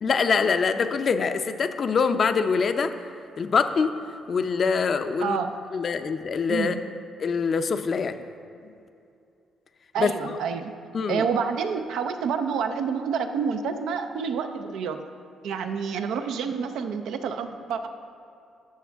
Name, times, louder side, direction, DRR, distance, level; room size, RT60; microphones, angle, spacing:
voice 1, 0.0-2.9 3.4-3.9 4.3-5.4 5.7-6.8 7.2-8.2 10.0-10.4 10.9-11.3, left 5 dB, 50° left, 9 dB, 0.5 m, -24 dB
voice 2, 5.2-5.5 6.5-6.8 9.9-10.7 11.1-15.0 15.4-17.9, right 6 dB, 85° right, 7 dB, 0.5 m, -28 dB
13.0 x 6.3 x 3.5 m, 2.6 s
cardioid pair, 90°, 0 cm